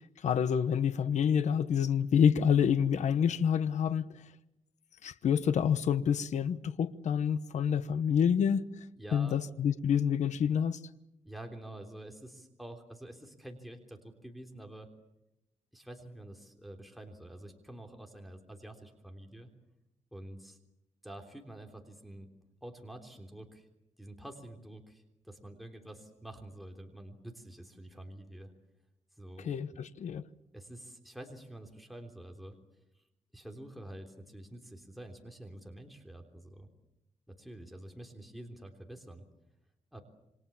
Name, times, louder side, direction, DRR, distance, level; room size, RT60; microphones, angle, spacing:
voice 1, 0.2-4.1 5.0-8.6 9.1-10.8 29.4-30.2, left 8 dB, 70° left, 1.1 m, -27 dB
voice 2, 8.9-9.4 11.2-14.9 15.7-19.5 20.1-20.6 21.0-22.3 22.6-23.7 24.0-28.5 29.2-29.8 30.5-32.6 33.0-33.1 33.3-36.7 37.3-39.2 39.9-40.0, right 1 dB, ahead, 3.4 m, -48 dB
28.0 x 25.5 x 7.2 m
cardioid pair, 120°, 13 cm